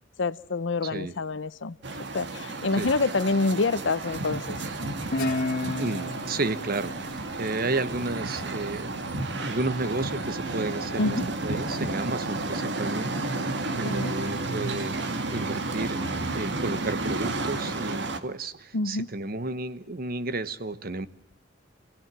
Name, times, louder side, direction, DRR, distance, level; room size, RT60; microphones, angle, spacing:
voice 1, 0.2-1.8 2.1-4.6 11.0-11.2 13.8-14.1 18.7-19.1, left 3 dB, 75° left, 16 dB, 0.8 m, -27 dB
voice 2, 0.8-1.1 2.7-2.9 5.8-9.1 9.4-13.1 13.4-16.0 16.3-21.1, right 2 dB, 50° right, 14 dB, 1.1 m, -32 dB
sound 1, 1.8-18.2, right 2 dB, 70° right, 1.7 m, -32 dB
Guitar, 5.1-8.4, left 2 dB, 50° left, 2.5 m, -32 dB
27.0 x 17.0 x 7.6 m, 0.83 s
head